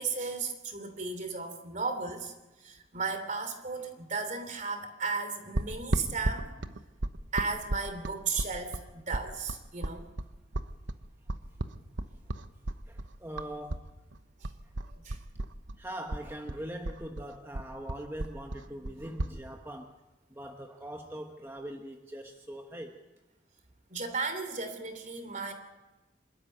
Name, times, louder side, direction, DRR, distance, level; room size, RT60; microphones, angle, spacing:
voice 1, 0.0-2.3 2.6-6.5 7.3-10.0 14.4-14.5 14.9-15.2 23.9-25.5, right 4 dB, 45° right, 9 dB, 3.1 m, -35 dB
sound 1, 5.6-13.9 14.1-15.8 16.1-19.4, right 2 dB, 85° right, 1.1 m, -34 dB
voice 2, 12.9-13.9 15.8-19.9 20.3-22.9, right 1 dB, 15° right, 2 dB, 1.2 m, -42 dB
26.5 x 13.0 x 9.2 m, 1.1 s
head